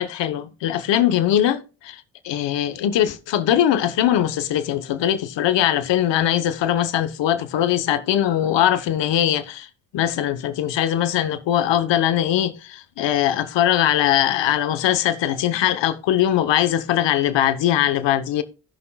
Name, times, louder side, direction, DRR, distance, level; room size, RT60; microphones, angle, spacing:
voice 1, 0.0-9.7 9.9-18.4, left 11 dB, 85° left, 0.9 m, -21 dB
16.0 x 5.6 x 2.2 m
supercardioid pair, 40°, 42 cm